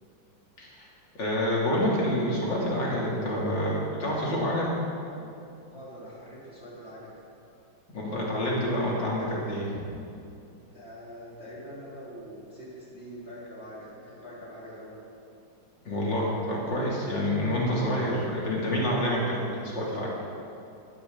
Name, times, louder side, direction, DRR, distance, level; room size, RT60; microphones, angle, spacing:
voice 1, 1.1-4.7 7.9-9.8 15.9-20.1, equal, 60° left, -5 dB, 4.0 m, -28 dB
voice 2, 5.6-7.1 10.7-14.9, equal, 30° left, -7 dB, 4.6 m, -44 dB
18.5 x 15.0 x 4.2 m, 2.6 s
omnidirectional pair, 2.2 m